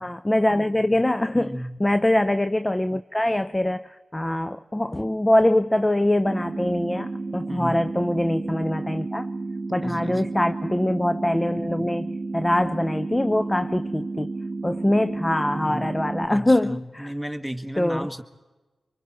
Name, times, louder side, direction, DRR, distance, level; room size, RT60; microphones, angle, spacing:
voice 1, 0.0-9.3 9.7-14.3 14.6-17.1 17.8-18.1, left 1 dB, 20° left, 0.5 m, -23 dB
voice 2, 1.3-1.7 7.5-7.8 9.8-10.2 15.5-15.9 16.3-18.2, equal, ahead, 1.8 m, -34 dB
sound 1, 6.3-16.3, right 3 dB, 55° right, 1.1 m, -32 dB
24.5 x 24.0 x 4.5 m
supercardioid pair, 40°, 0 cm